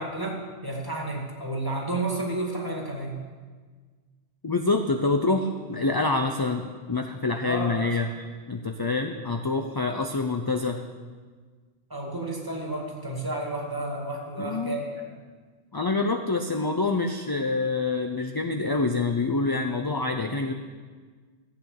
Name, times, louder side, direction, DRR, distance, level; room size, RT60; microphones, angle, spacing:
voice 1, 0.0-3.2 7.4-8.1 11.9-15.0, right 2 dB, 20° right, 0 dB, 2.2 m, -31 dB
voice 2, 4.4-6.6 6.9-8.1 8.5-10.8 14.4-14.8 15.7-20.5, left 3 dB, 25° left, 4 dB, 0.5 m, -26 dB
14.5 x 8.5 x 6.7 m, 1.5 s
omnidirectional pair, 1.1 m